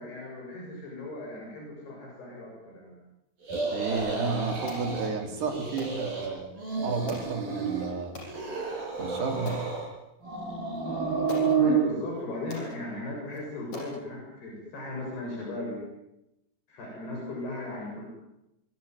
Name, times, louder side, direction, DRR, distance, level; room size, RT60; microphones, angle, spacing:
voice 1, 0.0-3.0 11.6-15.8 16.7-18.0, left 2 dB, 65° left, -1 dB, 9.2 m, -37 dB
sound 1, 3.4-5.1 5.4-6.3 6.5-7.9 8.3-9.9 10.2-11.8, right 4 dB, 55° right, 8.3 m, -30 dB
voice 2, 3.7-6.5 6.8-8.2 9.0-9.6, right 4 dB, 75° right, 4 dB, 5.9 m, -32 dB
sound 2, 4.7-4.9 5.8-6.0 7.1-7.3 8.1-8.3 8.9-9.0 9.5-9.7 10.7-10.8 11.3-11.5 12.2-12.3 12.5-12.7 13.3-13.4 13.7-14.0, equal, 40° left, 8.1 m, -40 dB
25.0 x 24.0 x 9.5 m, 0.91 s
omnidirectional pair, 4.9 m